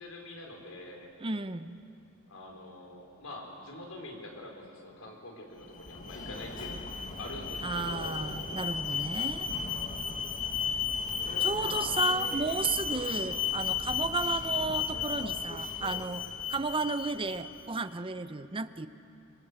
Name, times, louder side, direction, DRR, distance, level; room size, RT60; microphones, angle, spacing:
voice 1, 0.0-1.1 2.3-8.2 11.2-12.0 12.9-13.7, left 1 dB, 85° left, 1 dB, 4.6 m, -45 dB
voice 2, 1.2-1.8 7.6-9.5 11.4-18.9, right 3 dB, 25° right, 11 dB, 0.7 m, -33 dB
Alarm, 5.6-17.7, left 6 dB, 40° left, 1.7 m, -34 dB
25.5 x 24.0 x 8.1 m, 2.7 s
head